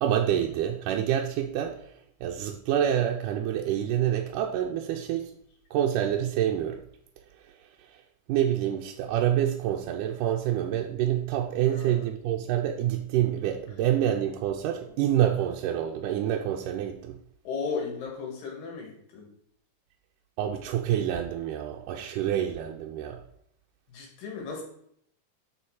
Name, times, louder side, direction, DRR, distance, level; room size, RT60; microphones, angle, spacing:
voice 1, 0.0-1.8 2.2-5.3 5.7-6.8 8.3-17.2 20.4-23.2, right 10 dB, 80° right, 1 dB, 2.2 m, -27 dB
voice 2, 11.6-12.1 14.8-14.9 17.4-19.3 23.9-24.6, left 5 dB, 90° left, 1 dB, 3.7 m, -35 dB
7.1 x 6.3 x 4.8 m, 0.68 s
omnidirectional pair, 3.8 m